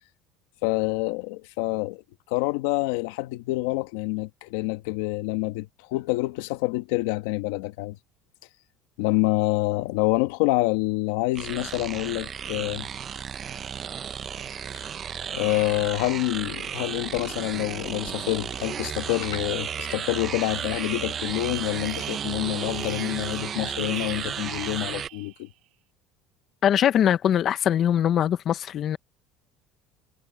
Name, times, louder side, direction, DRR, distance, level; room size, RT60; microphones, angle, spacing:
voice 1, 0.6-2.0 2.3-8.0 9.0-12.9 14.7-14.8 15.3-25.5, left 20 dB, 85° left, 1.4 m, -27 dB
sound 1, 11.4-25.1, right 8 dB, 35° right, 0.7 m, -33 dB
sound 2, 19.4-25.5, right 18 dB, 65° right, 2.9 m, -43 dB
voice 2, 26.6-29.0, left 10 dB, 45° left, 0.6 m, -22 dB
cardioid pair, 125°, 0 cm